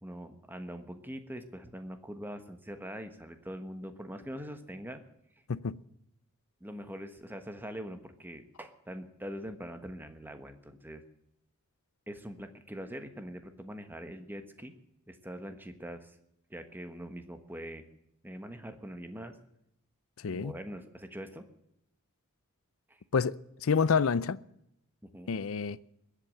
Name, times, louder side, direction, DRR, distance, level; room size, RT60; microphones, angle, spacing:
voice 1, 0.0-5.0 6.6-11.0 12.1-14.7 15.1-16.2 16.5-17.9 18.2-19.4 20.3-21.4 22.9-23.0 25.1-25.3, equal, 10° right, 1.3 m, -43 dB
voice 2, 20.2-20.5 23.1-24.4 25.3-25.8, left 5 dB, 65° left, 0.5 m, -28 dB
21.5 x 8.4 x 7.7 m
head